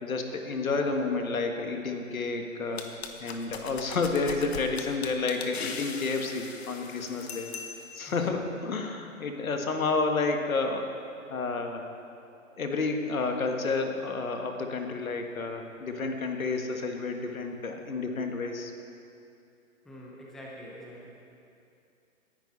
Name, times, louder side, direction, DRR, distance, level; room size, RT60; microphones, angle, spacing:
voice 1, 0.0-2.9 3.2-7.5 7.9-10.9 11.3-11.8 12.6-18.7, left 3 dB, 80° left, 4 dB, 1.7 m, -30 dB
sound 1, 2.8-8.1, left 5 dB, 50° left, 1.3 m, -40 dB
voice 2, 19.8-21.1, equal, ahead, -4 dB, 0.7 m, -45 dB
18.5 x 10.5 x 4.2 m, 2.6 s
hypercardioid pair, 145°, 41 cm